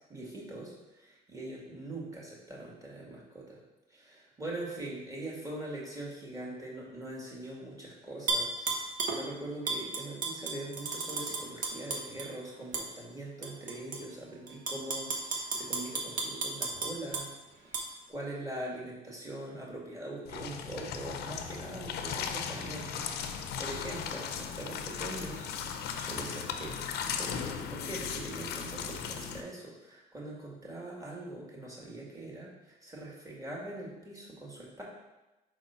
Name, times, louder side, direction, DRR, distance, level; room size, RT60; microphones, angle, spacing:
voice 1, 0.1-3.6 3.9-17.8 18.1-25.5 25.9-34.8, right 1 dB, 20° right, -4 dB, 2.0 m, -42 dB
Tap / Glass, 8.3-9.2 9.7-12.3 12.7-12.9 13.4-14.0 14.5-17.3 17.7-17.8, right 3 dB, 50° right, 1.0 m, -33 dB
sound 1, 20.2-29.4, left 7 dB, 75° left, 0.6 m, -37 dB
4.5 x 4.2 x 5.7 m, 1.1 s
cardioid pair, 110°, 17 cm